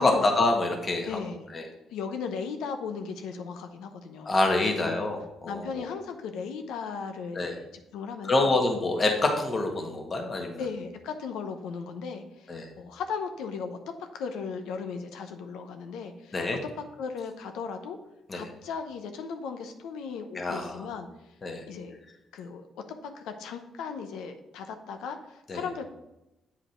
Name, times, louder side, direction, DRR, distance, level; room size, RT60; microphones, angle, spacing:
voice 1, 0.0-1.2 1.5-1.7 4.2-5.9 7.3-7.6 8.2-10.6 12.5-12.7 16.3-16.6 18.3-18.5 20.3-20.9 21.4-21.6 25.5-25.6, left 2 dB, 35° left, 2 dB, 1.5 m, -26 dB
voice 2, 1.0-1.5 1.9-4.3 4.7-5.0 5.5-7.7 7.9-8.5 10.6-16.4 17.0-18.0 18.3-21.1 21.7-22.0 22.3-25.9, left 5 dB, 90° left, 6 dB, 0.8 m, -37 dB
8.1 x 4.9 x 4.4 m, 0.91 s
cardioid pair, 90°, 0 cm